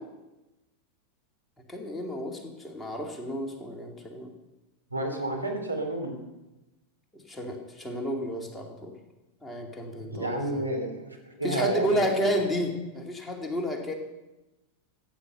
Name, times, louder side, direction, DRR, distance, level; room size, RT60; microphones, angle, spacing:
voice 1, 1.7-4.3 7.1-8.9 9.4-10.7 11.4-13.9, equal, 10° left, 1 dB, 2.5 m, -31 dB
voice 2, 4.9-6.2 10.0-12.4, right 1 dB, 85° right, 1 dB, 2.9 m, -31 dB
15.0 x 9.4 x 6.7 m, 1.0 s
figure-of-eight pair, 90°, 0 cm